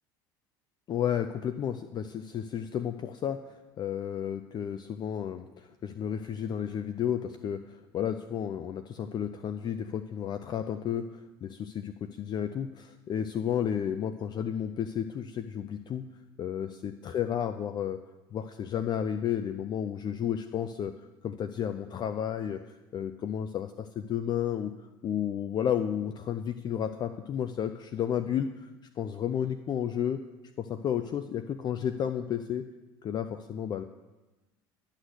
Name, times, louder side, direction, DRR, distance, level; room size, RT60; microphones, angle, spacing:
voice 1, 0.9-16.0 16.4-18.0 18.3-20.9 21.2-22.6 22.9-28.7 29.0-30.2 30.6-32.6 33.0-33.8, left 9 dB, 40° left, 10 dB, 0.5 m, -32 dB
11.5 x 6.3 x 7.9 m, 1.1 s
supercardioid pair, 100°, 11 cm